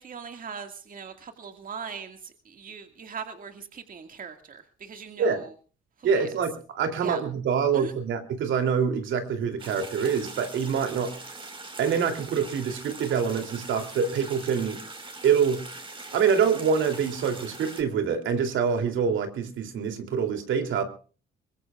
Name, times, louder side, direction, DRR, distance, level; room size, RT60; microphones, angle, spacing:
voice 1, 0.0-2.2 2.5-5.5 6.0-6.3 7.0-7.2 7.7-7.9, right 6 dB, 45° right, 6 dB, 2.1 m, -40 dB
voice 2, 6.0-11.1 11.8-14.8 15.2-15.6 16.1-20.8, right 6 dB, 75° right, 6 dB, 3.1 m, -25 dB
sound 1, 9.6-17.8, right 2 dB, 25° right, 4.6 m, -42 dB
23.0 x 20.0 x 2.4 m, 0.38 s
cardioid pair, 90°, 20 cm